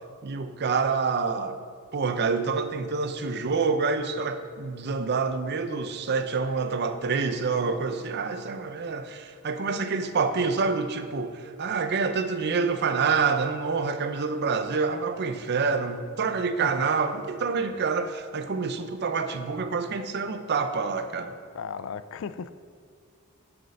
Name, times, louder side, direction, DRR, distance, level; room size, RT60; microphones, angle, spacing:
voice 1, 0.2-1.6 1.9-21.4, right 4 dB, 50° right, 10 dB, 0.6 m, -27 dB
voice 2, 21.5-22.5, left 6 dB, 65° left, 14 dB, 0.4 m, -35 dB
7.9 x 7.5 x 5.4 m, 2.1 s
head